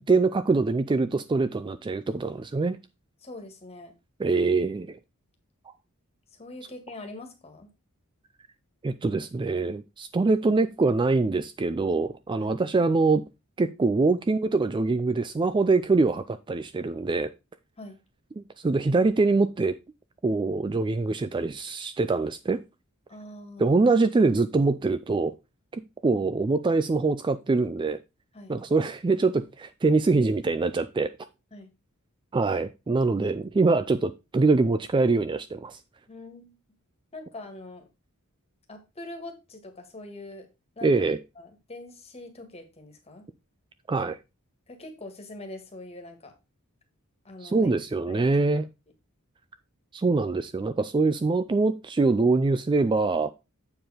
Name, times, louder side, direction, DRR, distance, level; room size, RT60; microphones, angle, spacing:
voice 1, 0.0-2.8 4.2-5.0 8.8-13.2 13.6-17.3 18.4-19.8 20.2-22.6 23.6-25.3 25.7-28.0 28.5-31.1 32.3-35.8 40.8-41.2 43.9-44.2 47.4-48.6 49.9-53.3, right 3 dB, 20° right, 0.3 m, -24 dB
voice 2, 3.2-3.9 6.3-7.7 12.4-12.6 17.8-18.0 23.1-23.7 28.3-28.6 31.5-31.7 36.1-36.6 37.1-37.9 38.7-40.5 40.8-40.9 41.4-43.3 44.7-46.3 47.2-47.7 48.1-48.6, left 2 dB, 30° left, 1.8 m, -43 dB
7.6 x 4.7 x 4.9 m
head